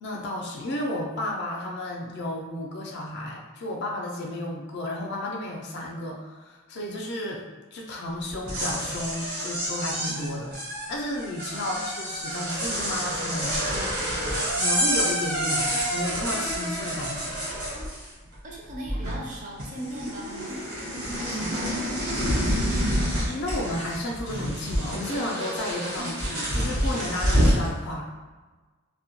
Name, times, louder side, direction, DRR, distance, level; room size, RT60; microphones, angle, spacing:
voice 1, 0.0-7.4 7.7-10.5 10.9-17.4 23.3-28.1, left 1 dB, 50° left, 0 dB, 0.4 m, -33 dB
sound 1, 8.3-18.3 18.6-19.3 19.6-27.7, equal, 80° right, 1.1 m, -28 dB
voice 2, 18.4-23.0, right 1 dB, 35° right, -3 dB, 0.5 m, -40 dB
2.1 x 2.1 x 2.8 m, 1.3 s
head